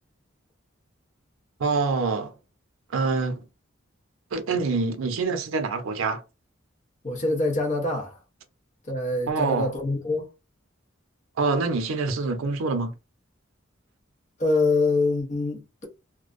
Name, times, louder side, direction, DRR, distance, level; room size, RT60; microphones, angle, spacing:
voice 1, 1.6-2.3 2.9-3.4 4.3-6.2 9.3-9.7 11.4-12.9, right 4 dB, 90° right, 0.5 m, -25 dB
voice 2, 7.0-8.2 8.9-10.2 14.4-15.9, left 2 dB, 35° left, 0.7 m, -25 dB
2.4 x 2.1 x 2.4 m
head